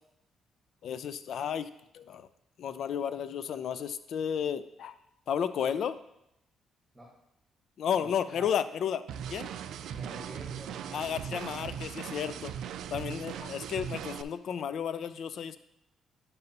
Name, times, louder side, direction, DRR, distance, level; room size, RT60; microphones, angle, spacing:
voice 1, 0.8-1.7 1.9-2.3 2.6-4.9 5.3-6.0 7.8-9.0 9.3-9.5 10.9-12.5 12.9-15.6, left 8 dB, 65° left, 13 dB, 0.4 m, -32 dB
voice 2, 8.0-8.5 9.9-11.5, right 1 dB, 10° right, -3 dB, 1.6 m, -49 dB
sound 1, 9.1-14.2, right 9 dB, 80° right, 0.3 m, -39 dB
9.3 x 5.4 x 2.9 m, 0.81 s
cardioid pair, 90°, 0 cm